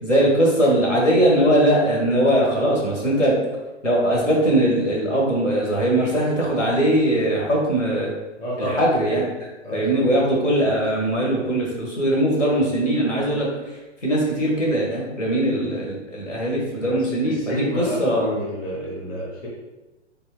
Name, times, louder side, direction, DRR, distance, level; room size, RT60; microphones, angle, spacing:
voice 1, 0.0-3.3 3.8-8.1 8.6-9.2 9.7-13.5 14.0-18.3, right 1 dB, 85° left, -3 dB, 1.4 m, -20 dB
voice 2, 8.4-8.9 9.6-10.1 16.7-19.5, left 1 dB, 10° left, -5 dB, 0.6 m, -29 dB
3.6 x 2.9 x 3.1 m, 1.1 s
figure-of-eight pair, 120°, 36 cm